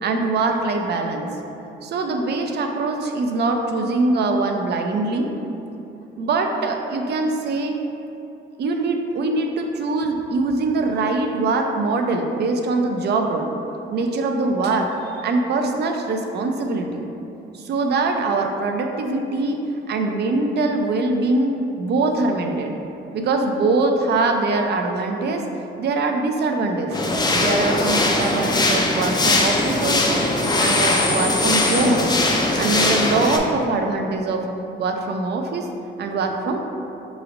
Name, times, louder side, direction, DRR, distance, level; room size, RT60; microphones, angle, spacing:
voice 1, 0.0-1.3 1.8-5.3 6.2-7.8 8.6-13.5 13.9-17.1 17.6-19.6 19.9-22.8 23.1-25.4 25.8-27.0 27.3-30.3 30.6-32.3 32.6-34.5 34.8-35.7 36.0-36.6, right 3 dB, 60° right, 4 dB, 0.4 m, -23 dB
sound 1, 26.9-33.4, left 2 dB, 20° left, 0.4 m, -20 dB
4.9 x 3.0 x 2.5 m, 2.9 s
cardioid pair, 90°, 20 cm